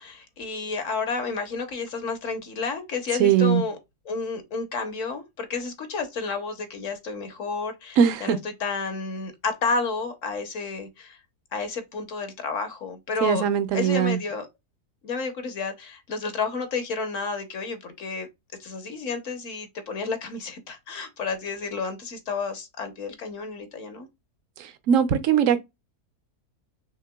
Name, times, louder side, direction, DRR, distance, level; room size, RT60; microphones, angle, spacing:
voice 1, 0.0-3.8 4.0-11.2 11.5-13.4 13.7-14.5 15.0-18.3 18.6-24.1, left 4 dB, 60° left, 1.2 m, -31 dB
voice 2, 3.2-3.6 8.0-8.4 13.2-14.2 24.6-25.6, right 8 dB, 60° right, 1.0 m, -20 dB
5.8 x 3.1 x 2.2 m
omnidirectional pair, 1.7 m